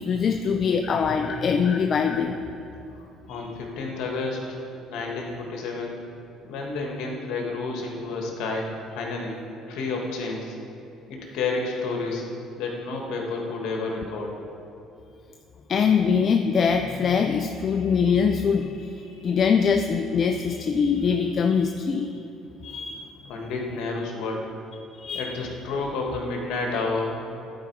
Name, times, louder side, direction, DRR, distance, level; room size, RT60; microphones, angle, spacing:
voice 1, 0.0-2.4 3.3-3.5 15.7-22.2 22.6-23.1 24.9-25.4, left 6 dB, 45° left, 6 dB, 0.4 m, -23 dB
voice 2, 3.3-4.6 4.9-6.0 6.4-9.4 9.7-10.5 11.1-12.2 12.6-14.3 23.3-24.5 25.1-27.1, left 3 dB, 75° left, 0 dB, 1.4 m, -30 dB
11.0 x 4.7 x 4.7 m, 2.8 s
supercardioid pair, 90°, 0 cm